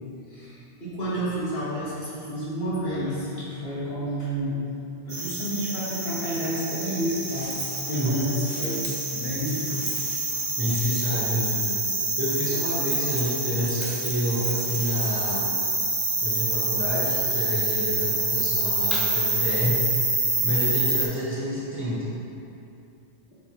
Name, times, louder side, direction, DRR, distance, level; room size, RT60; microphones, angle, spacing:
voice 1, 0.3-4.6 5.0-10.5, equal, 70° left, -9 dB, 1.7 m, -30 dB
sound 1, 5.1-21.1, right 2 dB, 45° right, 1.1 m, -27 dB
voice 2, 7.9-8.3 10.6-11.8 12.2-15.5 16.2-19.9 20.4-22.2, equal, 10° right, -9 dB, 1.1 m, -28 dB
8.2 x 3.7 x 3.0 m, 2.7 s
omnidirectional pair, 1.1 m